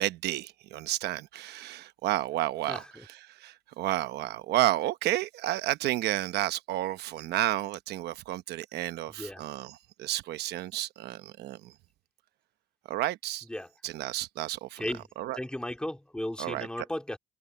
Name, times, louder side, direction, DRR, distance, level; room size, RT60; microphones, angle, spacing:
voice 1, 0.0-11.7 12.9-13.4 13.8-14.8 15.2-15.4 16.4-16.9, right 15 dB, 80° right, 1.0 m, -31 dB
voice 2, 2.7-3.0 9.2-9.4 13.5-13.7 14.8-15.0 15.4-17.2, left 1 dB, 5° left, 2.5 m, -35 dB
cardioid pair, 110°, 17 cm